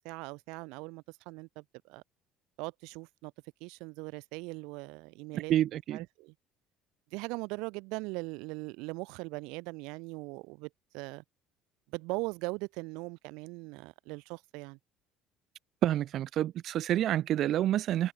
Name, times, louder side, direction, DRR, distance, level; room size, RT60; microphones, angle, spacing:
voice 1, 0.0-2.0 2.6-3.3 3.6-5.5 5.9-6.3 7.1-11.2 11.9-14.8, right 27 dB, 80° right, 1.2 m, -40 dB
voice 2, 5.3-6.1 15.8-18.1, right 12 dB, 45° right, 0.7 m, -28 dB
cardioid pair, 155°, 0 cm